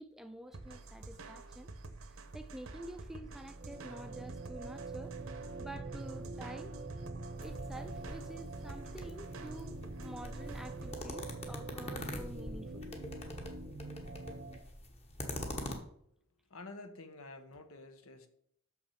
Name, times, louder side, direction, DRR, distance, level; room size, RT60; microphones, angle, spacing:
voice 1, 0.0-1.7 2.1-5.1 5.6-6.7 7.4-12.9, right 1 dB, ahead, 8 dB, 0.4 m, -49 dB
sound 1, 0.5-10.9, right 2 dB, 80° right, 0.9 m, -49 dB
sound 2, 3.1-14.6, right 3 dB, 45° right, 0.7 m, -45 dB
sound 3, 7.4-15.7, left 1 dB, 30° left, 1.1 m, -45 dB
voice 2, 16.5-18.3, left 2 dB, 80° left, 8 dB, 1.0 m, -50 dB
6.4 x 5.9 x 5.7 m, 0.69 s
head